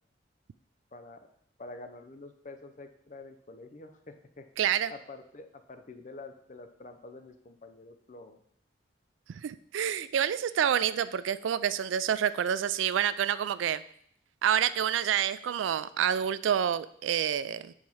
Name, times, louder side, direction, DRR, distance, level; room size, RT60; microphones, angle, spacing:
voice 1, 1.6-4.5 4.9-8.4, left 2 dB, 40° left, 7 dB, 0.6 m, -47 dB
voice 2, 4.6-4.9 9.4-13.8 14.4-17.7, right 9 dB, 90° right, 15 dB, 0.3 m, -28 dB
4.8 x 4.5 x 5.4 m, 0.67 s
head